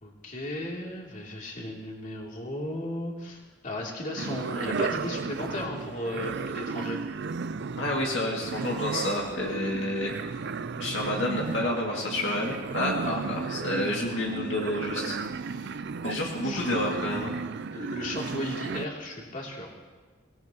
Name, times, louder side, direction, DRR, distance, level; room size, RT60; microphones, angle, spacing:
voice 1, 0.0-7.0 13.0-13.2 16.2-16.8 17.7-19.7, left 1 dB, 45° left, -2 dB, 2.9 m, -35 dB
sound 1, 4.2-18.9, right 5 dB, 60° right, 0.5 m, -34 dB
voice 2, 7.8-10.1 10.8-13.0 13.2-15.2 15.5-15.8 16.0-17.3, left 1 dB, 70° left, -3 dB, 2.3 m, -29 dB
25.0 x 17.5 x 3.0 m, 1.3 s
head